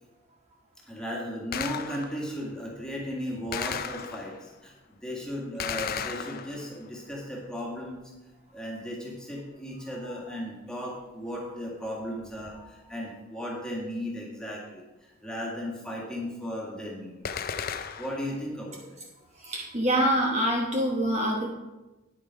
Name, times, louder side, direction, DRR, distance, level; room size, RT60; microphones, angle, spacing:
voice 1, 0.9-4.7 5.0-8.0 8.5-17.5 18.0-19.0, equal, 5° left, -3 dB, 1.8 m, -36 dB
Gunshot gunfire, 1.5-2.3 3.5-4.5 5.6-6.9 17.3-18.3, left 7 dB, 45° left, 0.5 m, -35 dB
voice 2, 19.4-21.5, equal, 30° right, -2 dB, 1.1 m, -25 dB
9.6 x 7.3 x 4.9 m, 1.1 s
head